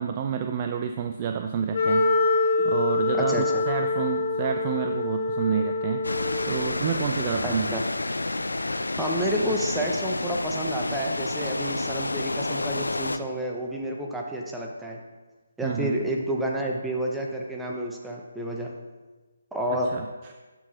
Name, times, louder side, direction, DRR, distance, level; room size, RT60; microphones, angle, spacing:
voice 1, 0.0-2.1 2.6-6.0 6.5-7.8 15.6-16.0 19.7-20.1, right 7 dB, 25° right, 5 dB, 0.3 m, -29 dB
Wind instrument woodwind instrument, 1.7-6.8, left 3 dB, 40° left, 1.1 m, -25 dB
voice 2, 3.1-3.6 7.4-7.8 9.0-15.0 15.6-18.7 19.5-19.9, right 1 dB, 5° right, -1 dB, 0.7 m, -30 dB
sound 1, 6.0-13.2, left 2 dB, 75° left, 0.4 m, -29 dB
12.0 x 4.6 x 3.2 m, 1.2 s
figure-of-eight pair, 145°, 0 cm